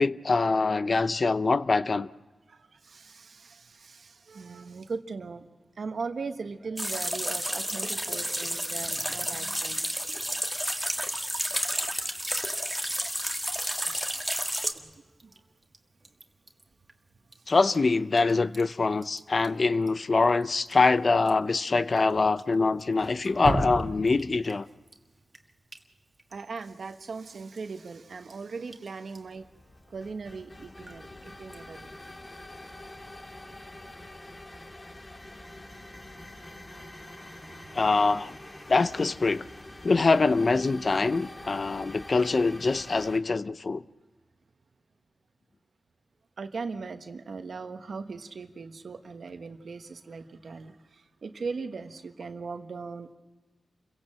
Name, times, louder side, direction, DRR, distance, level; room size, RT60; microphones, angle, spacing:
voice 1, 0.0-2.1 17.5-24.7 37.7-38.4 38.7-39.4 39.8-43.8, left 3 dB, 55° left, 0.6 m, -24 dB
voice 2, 2.5-5.5 5.7-9.9 11.5-11.6 15.2-15.3 26.3-29.5 29.9-31.9 36.6-37.8 46.4-53.1, right 4 dB, 75° right, 1.3 m, -39 dB
sound 1, 6.8-14.7, equal, ahead, 1.7 m, -31 dB
Drip, 13.8-32.1, right 1 dB, 35° right, 1.9 m, -42 dB
sound 2, 29.2-43.2, left 1 dB, 35° left, 2.2 m, -46 dB
28.0 x 16.5 x 7.6 m
cardioid pair, 50°, 0 cm